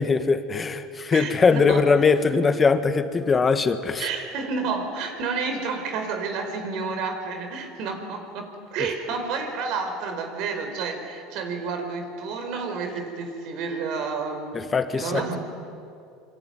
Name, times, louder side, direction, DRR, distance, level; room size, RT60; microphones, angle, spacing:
voice 1, 0.0-4.1 14.5-15.4, left 4 dB, 20° left, 9 dB, 1.7 m, -21 dB
voice 2, 1.1-1.8 4.0-15.4, right 4 dB, 60° right, 6 dB, 4.9 m, -30 dB
26.5 x 24.5 x 9.3 m, 2.5 s
supercardioid pair, 115°, 0 cm